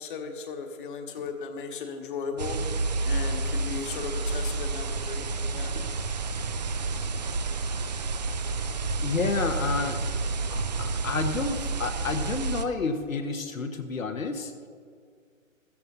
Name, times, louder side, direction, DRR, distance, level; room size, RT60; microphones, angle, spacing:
voice 1, 0.0-2.6 3.0-5.8, left 5 dB, 40° left, 4 dB, 1.5 m, -36 dB
sound 1, 2.4-12.6, right 3 dB, 35° right, 0.4 m, -30 dB
voice 2, 9.0-10.0 10.5-14.5, left 4 dB, 70° left, 5 dB, 1.3 m, -30 dB
15.0 x 14.5 x 2.7 m, 2.1 s
figure-of-eight pair, 130°, 41 cm